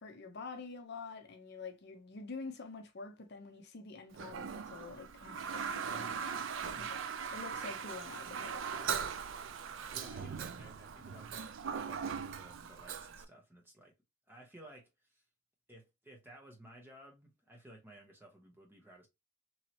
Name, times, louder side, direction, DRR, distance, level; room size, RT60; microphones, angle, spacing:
voice 1, 0.0-6.3 6.7-7.0 7.3-8.9, left 4 dB, 50° left, 0.6 m, -47 dB
Toilet flush, 4.1-13.3, right 6 dB, 60° right, 0.4 m, -40 dB
voice 2, 9.9-13.9 14.3-15.2 15.7-19.1, right 1 dB, 10° right, 0.8 m, -56 dB
3.0 x 2.8 x 2.9 m
head